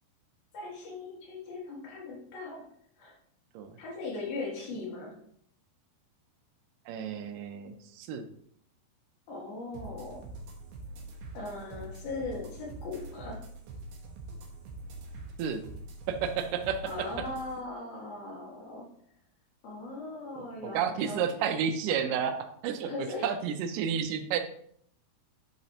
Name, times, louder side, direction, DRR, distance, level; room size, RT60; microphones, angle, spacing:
voice 1, 0.5-2.7 3.0-3.2 3.8-5.2 9.3-10.3 11.3-13.5 16.8-18.9 19.6-21.4 22.9-23.3, left 3 dB, 70° left, -3 dB, 3.5 m, -39 dB
voice 2, 6.9-8.3 15.4-15.6 16.1-17.1 20.4-22.4 22.6-24.4, right 7 dB, 85° right, 5 dB, 1.9 m, -31 dB
sound 1, 9.7-17.5, right 2 dB, 70° right, 2.5 m, -44 dB
10.5 x 4.0 x 2.9 m, 0.65 s
omnidirectional pair, 4.6 m